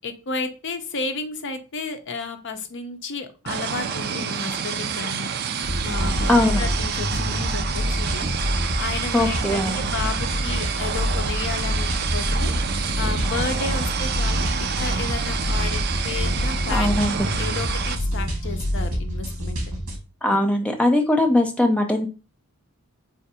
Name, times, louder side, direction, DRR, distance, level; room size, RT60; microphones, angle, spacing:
voice 1, 0.0-5.3 5.8-12.5 13.0-16.9 17.2-19.6, left 4 dB, 55° left, 7 dB, 0.6 m, -32 dB
sound 1, 3.5-18.0, right 7 dB, 45° right, 0.4 m, -28 dB
sound 2, 5.6-20.0, equal, 75° right, 1.5 m, -26 dB
voice 2, 6.3-6.6 9.1-9.8 16.7-17.3 20.2-22.1, left 1 dB, 5° left, 3 dB, 0.5 m, -20 dB
3.4 x 2.5 x 4.2 m, 0.32 s
head